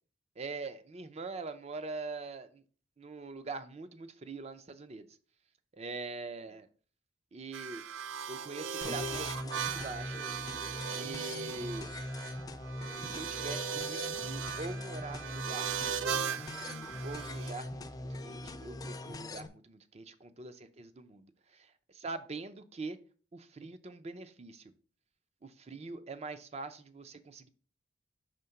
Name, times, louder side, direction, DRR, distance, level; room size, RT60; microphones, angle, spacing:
voice 1, 0.4-2.6 3.0-5.1 5.7-6.7 7.3-7.8 8.3-10.3 10.9-11.9 13.0-16.3 16.6-23.0 23.3-24.7 25.4-27.5, right 3 dB, 35° right, 0.5 m, -43 dB
sound 1, 7.5-17.5, right 7 dB, 90° right, 0.4 m, -38 dB
sound 2, 8.8-19.5, left 1 dB, 20° left, 0.4 m, -41 dB
5.1 x 3.6 x 5.7 m
head